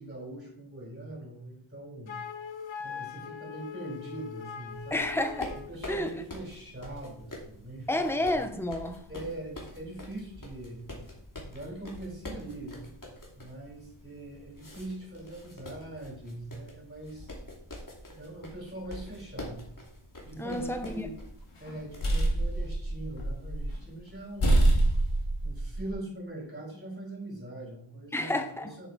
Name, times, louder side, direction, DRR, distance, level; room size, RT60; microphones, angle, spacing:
voice 1, 0.0-2.2 2.8-5.1 5.5-8.3 9.1-10.8 11.5-12.9 13.4-17.3 18.1-19.6 20.2-21.2 21.6-24.7 25.4-28.9, right 1 dB, 20° right, 4.1 m, -42 dB
Wind instrument woodwind instrument, 2.1-5.8, left 7 dB, 65° left, 0.8 m, -41 dB
sound 1, 4.7-22.1, left 1 dB, 40° left, 2.9 m, -46 dB
voice 2, 4.9-5.5 5.9-6.1 7.9-9.1 20.4-21.1 28.1-28.7, left 1 dB, 5° left, 1.0 m, -30 dB
sound 2, 20.6-21.2 21.7-23.8 24.1-24.2 24.4-25.9, right 1 dB, 90° left, 2.4 m, -26 dB
8.4 x 7.2 x 4.2 m
wide cardioid pair, 55°, 49 cm